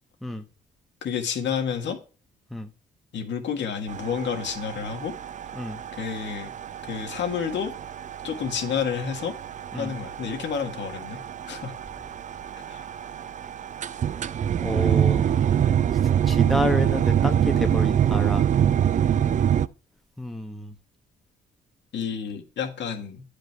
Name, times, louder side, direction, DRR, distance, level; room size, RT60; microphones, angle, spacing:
voice 1, 1.0-2.0 3.1-5.1 6.0-6.5 6.9-7.7 8.2-9.3 9.7-11.2 11.5-11.7 12.7-12.8 21.9-23.2, left 7 dB, 65° left, 1.7 m, -30 dB
sound 1, 3.9-19.7, right 9 dB, 40° right, 0.4 m, -25 dB
voice 2, 14.6-15.4 16.3-18.4 20.2-20.7, left 1 dB, ahead, 1.0 m, -29 dB
9.2 x 5.1 x 4.7 m
cardioid pair, 90°, 20 cm